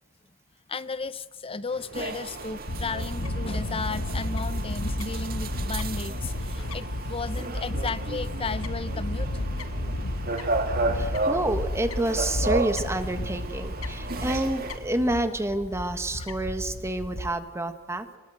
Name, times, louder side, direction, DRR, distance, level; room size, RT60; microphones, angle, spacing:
voice 1, 0.7-9.3 16.2-16.3, left 4 dB, 25° left, 15 dB, 0.7 m, -34 dB
sound 1, 1.7-15.2, right 1 dB, 70° right, 4.9 m, -48 dB
sound 2, 1.9-14.8, right 2 dB, 45° right, 2.0 m, -33 dB
Fowl / Bird, 2.7-17.3, left 1 dB, 90° left, 1.4 m, -32 dB
voice 2, 10.9-18.2, right 1 dB, 15° right, 8 dB, 1.4 m, -28 dB
24.5 x 21.0 x 7.8 m, 1.2 s
head